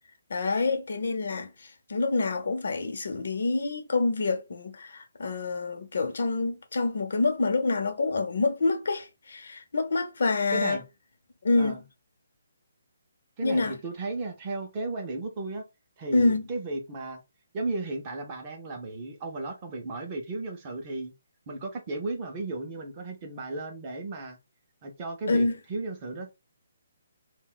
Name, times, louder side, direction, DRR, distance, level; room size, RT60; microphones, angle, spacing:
voice 1, 0.3-10.8 11.4-11.8 13.4-13.8 16.1-16.5 25.3-25.6, left 3 dB, 60° left, 0.6 m, -27 dB
voice 2, 10.5-10.8 11.5-11.8 13.4-15.6 16.0-17.2 17.5-21.1 21.5-24.4 24.8-26.3, right 2 dB, 20° right, 0.4 m, -34 dB
2.4 x 2.1 x 3.6 m
hypercardioid pair, 180°, 0 cm